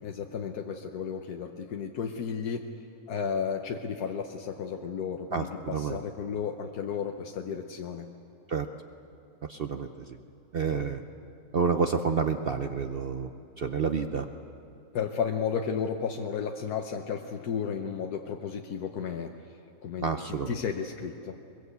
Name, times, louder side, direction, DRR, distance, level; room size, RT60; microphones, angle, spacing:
voice 1, 0.0-2.7 3.1-8.1 10.7-10.8 14.9-19.3 19.8-20.1 20.5-21.4, left 6 dB, 85° left, 4 dB, 1.4 m, -33 dB
voice 2, 5.3-6.0 8.5-8.7 9.5-9.9 10.5-11.0 11.5-13.3 13.6-14.3 20.0-20.6, right 5 dB, 50° right, 7 dB, 0.7 m, -29 dB
22.0 x 22.0 x 8.1 m, 2.6 s
omnidirectional pair, 1.6 m